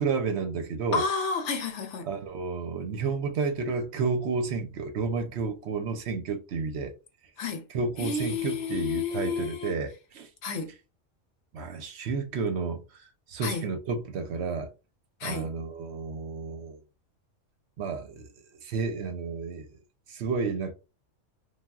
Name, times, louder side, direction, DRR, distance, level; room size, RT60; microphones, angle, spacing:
voice 1, 0.0-1.0 2.0-6.9 7.7-10.3 11.5-14.7 15.2-16.8 17.8-18.3 18.6-19.7 20.1-20.7, right 4 dB, 65° right, 0.8 m, -31 dB
voice 2, 0.9-2.1 7.4-7.7 8.0-9.8 10.4-10.7 13.4-13.7 15.2-15.5, left 5 dB, 70° left, 0.9 m, -31 dB
3.4 x 2.3 x 2.3 m
omnidirectional pair, 1.3 m